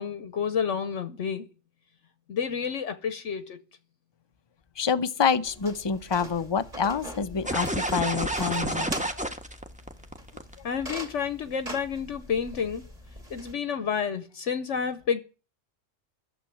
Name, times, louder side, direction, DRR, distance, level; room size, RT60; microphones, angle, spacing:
voice 1, 0.0-1.5 2.3-3.6 10.6-12.8 13.3-15.2, left 7 dB, 70° left, 1.2 m, -30 dB
voice 2, 4.8-9.3, left 6 dB, 25° left, 0.6 m, -27 dB
sound 1, 5.5-13.5, right 1 dB, 30° right, 2.8 m, -42 dB
sound 2, 7.4-10.5, right 1 dB, 5° right, 1.1 m, -29 dB
12.5 x 7.2 x 9.1 m
omnidirectional pair, 1.3 m